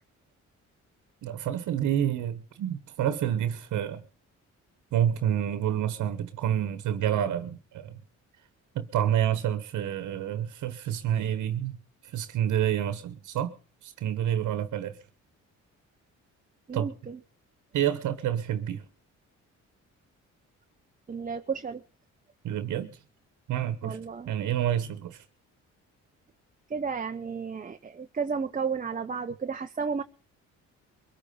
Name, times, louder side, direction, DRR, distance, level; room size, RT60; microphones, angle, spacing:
voice 1, 1.2-4.0 4.9-8.0 8.7-11.8 12.1-13.5 13.8-15.0 16.7-16.9 17.7-18.8 22.4-23.0 23.5-24.0 24.3-25.2, right 10 dB, 80° right, 1.3 m, -28 dB
voice 2, 16.7-17.2 21.1-21.8 23.8-24.3 26.7-30.0, right 5 dB, 25° right, 0.9 m, -32 dB
22.5 x 8.6 x 5.6 m
cardioid pair, 90°, 30 cm